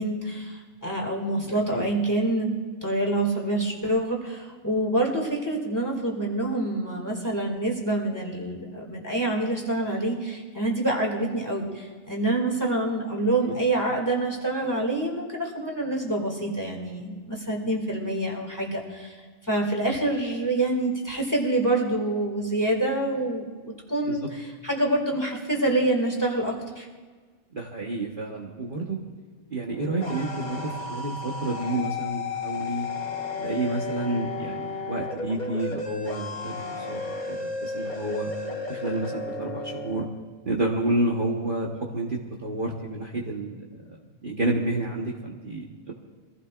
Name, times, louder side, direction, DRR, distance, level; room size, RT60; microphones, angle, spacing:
voice 1, 0.0-2.5 2.8-26.9, right 2 dB, 15° left, -1 dB, 2.2 m, -26 dB
voice 2, 1.4-1.8 13.5-13.6 24.1-24.2 27.5-29.0 29.5-32.9 33.4-37.0 37.3-38.3 38.7-40.1 40.4-43.6 43.9-45.9, right 2 dB, 40° right, -2 dB, 1.4 m, -30 dB
sound 1, 29.6-40.1, left 3 dB, 35° left, 1.3 m, -33 dB
24.0 x 16.0 x 2.5 m, 1.5 s
omnidirectional pair, 1.5 m